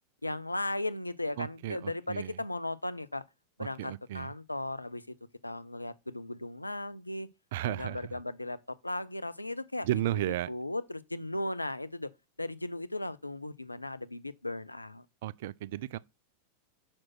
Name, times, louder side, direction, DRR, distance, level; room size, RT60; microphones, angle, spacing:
voice 1, 0.2-3.2 3.6-5.1 5.4-7.3 7.6-12.1 12.4-15.1, left 2 dB, 85° left, 0.5 m, -36 dB
voice 2, 1.4-2.4 3.8-4.3 7.5-8.1 9.8-10.5 15.2-16.0, right 14 dB, 55° right, 0.3 m, -33 dB
6.1 x 4.4 x 5.8 m
figure-of-eight pair, 90°, 0 cm